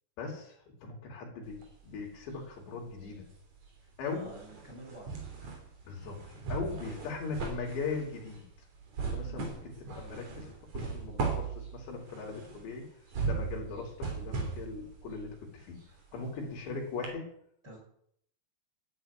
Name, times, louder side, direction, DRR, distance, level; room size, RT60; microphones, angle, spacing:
voice 1, 0.2-0.6 0.8-1.6 1.8-3.3 4.0-4.3 5.8-6.2 6.5-8.4 9.1-12.9 13.2-15.8 16.1-17.3, left 4 dB, 75° left, 0 dB, 5.4 m, -39 dB
sound 1, 1.4-2.6 2.9-16.6 17.0-17.1, right 4 dB, 40° right, 4.0 m, -38 dB
voice 2, 3.8-5.1 9.2-9.5 16.1-16.4 17.6-17.8, right 1 dB, 20° right, -2 dB, 8.0 m, -50 dB
12.5 x 9.5 x 9.6 m, 0.66 s
omnidirectional pair, 5.1 m